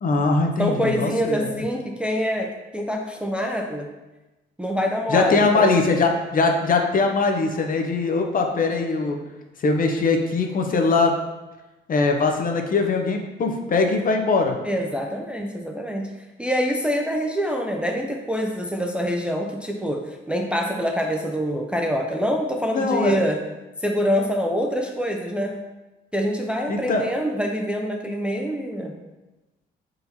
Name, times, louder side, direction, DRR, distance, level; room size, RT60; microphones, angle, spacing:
voice 1, 0.0-1.5 5.1-9.2 9.6-11.1 11.9-14.6 22.7-23.3 26.7-27.1, left 3 dB, 45° left, 3 dB, 0.6 m, -21 dB
voice 2, 0.6-3.9 4.6-5.8 14.6-16.1 16.4-23.4 23.8-25.6 26.1-29.0, equal, 5° right, 1 dB, 0.4 m, -25 dB
4.4 x 3.8 x 2.7 m, 1.1 s
cardioid pair, 90°, 20 cm